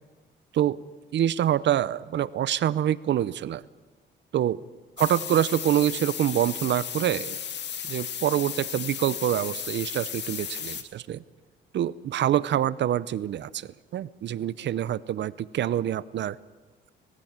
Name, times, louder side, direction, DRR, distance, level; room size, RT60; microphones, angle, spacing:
voice 1, 1.1-3.6 4.3-4.6 5.0-7.4 7.9-11.2 11.7-16.4, right 11 dB, 65° right, 18 dB, 0.7 m, -26 dB
sound 1, 5.0-10.8, left 8 dB, 60° left, 2.2 m, -35 dB
21.5 x 15.0 x 8.8 m, 1.3 s
cardioid pair, 90°, 20 cm